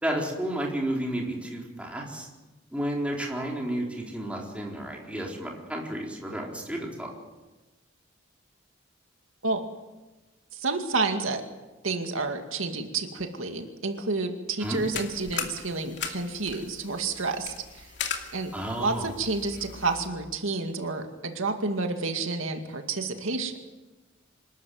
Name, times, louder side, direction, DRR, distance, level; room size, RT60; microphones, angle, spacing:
voice 1, 0.0-2.3 2.7-7.1 14.6-14.8 18.5-19.1, right 1 dB, 5° right, -2 dB, 4.1 m, -32 dB
voice 2, 10.5-11.4 11.8-17.9 18.3-18.5 18.8-23.5, right 3 dB, 90° right, 5 dB, 2.3 m, -30 dB
sound 1, 14.6-20.1, left 7 dB, 60° left, 2.7 m, -38 dB
25.5 x 14.0 x 9.4 m, 1.1 s
head